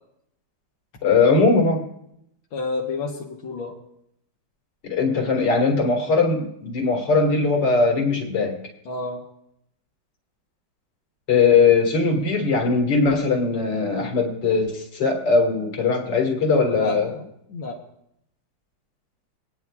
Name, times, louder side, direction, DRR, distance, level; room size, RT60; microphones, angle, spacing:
voice 1, 1.0-1.8 4.8-8.6 11.3-17.1, left 4 dB, 65° left, 1 dB, 2.5 m, -20 dB
voice 2, 2.5-3.8 8.9-9.2 16.7-17.8, left 3 dB, 85° left, -2 dB, 1.9 m, -30 dB
24.5 x 9.5 x 2.4 m, 0.75 s
omnidirectional pair, 2.1 m